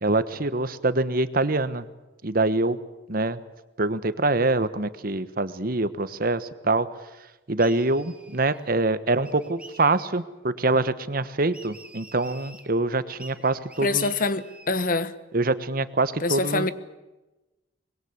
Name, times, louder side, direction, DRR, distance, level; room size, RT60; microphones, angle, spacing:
voice 1, 0.0-1.8 2.2-2.8 3.1-3.4 3.8-6.9 7.5-14.1 15.3-16.7, right 2 dB, 55° right, 1.3 m, -25 dB
sound 1, 7.6-8.7 9.2-10.2 11.5-12.7 13.2-14.9, right 2 dB, 5° right, 2.4 m, -48 dB
voice 2, 13.8-15.1 16.2-16.7, left 3 dB, 50° left, 1.2 m, -25 dB
24.5 x 21.5 x 8.2 m
head